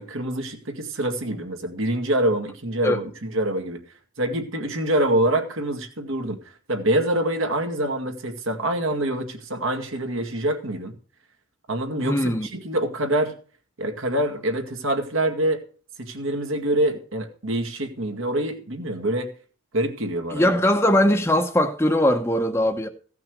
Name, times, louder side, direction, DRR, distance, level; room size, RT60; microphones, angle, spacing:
voice 1, 0.0-3.8 4.2-10.9 11.7-13.3 13.8-15.6 16.0-19.3 19.7-20.5, right 1 dB, 70° right, 2.0 m, -25 dB
voice 2, 12.0-12.5 20.3-22.9, left 1 dB, 10° left, 0.8 m, -20 dB
15.5 x 5.9 x 6.3 m
head